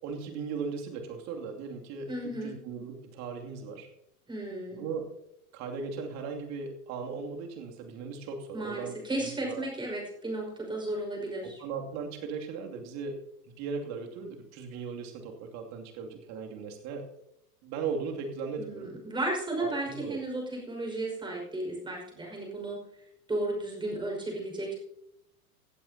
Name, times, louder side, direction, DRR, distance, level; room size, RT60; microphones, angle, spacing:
voice 1, 0.0-3.9 4.7-5.1 5.5-9.6 11.4-13.2 13.6-17.1 17.6-18.9 19.6-20.2, right 5 dB, 35° right, 2 dB, 2.7 m, -38 dB
voice 2, 2.1-2.6 4.3-4.8 8.5-11.6 18.6-22.8 23.3-24.7, right 1 dB, 10° right, 0 dB, 5.5 m, -34 dB
17.0 x 15.0 x 2.8 m, 0.79 s
figure-of-eight pair, 95°, 46 cm